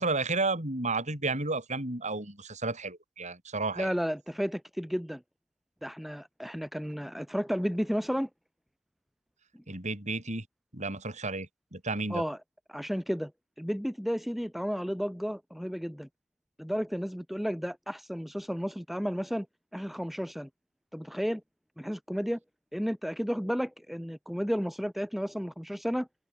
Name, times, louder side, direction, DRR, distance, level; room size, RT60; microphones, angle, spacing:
voice 1, 0.0-3.9 9.7-10.4 10.7-12.2, right 3 dB, 35° right, 5.7 m, -32 dB
voice 2, 3.8-5.2 5.8-8.3 12.1-12.4 12.7-13.3 13.6-16.1 16.6-19.5 19.7-20.5 20.9-21.4 21.8-22.4 22.7-26.1, equal, ahead, 3.4 m, -32 dB
open air
head